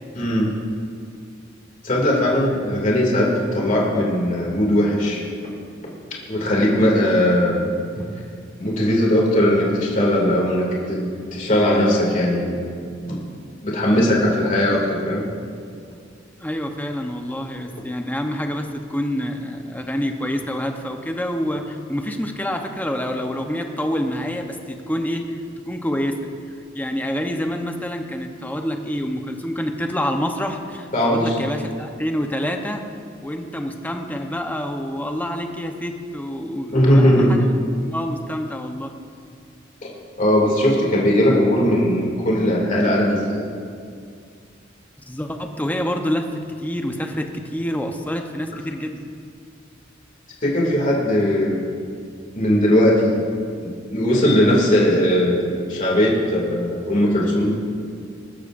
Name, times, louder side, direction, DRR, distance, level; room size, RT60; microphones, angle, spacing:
voice 1, 0.1-0.6 1.8-5.2 6.3-7.6 8.6-11.0 11.3-12.6 13.0-13.1 13.6-15.2 30.9-31.4 36.7-37.4 39.8-39.9 40.2-43.4 50.4-51.7 52.4-53.2 53.6-57.5, equal, 45° left, -3 dB, 2.5 m, -19 dB
voice 2, 16.4-25.4 25.7-26.2 26.7-32.8 33.2-37.4 37.8-38.9 45.1-49.1, equal, 10° left, 4 dB, 0.8 m, -27 dB
21.5 x 12.5 x 2.6 m, 2.3 s
head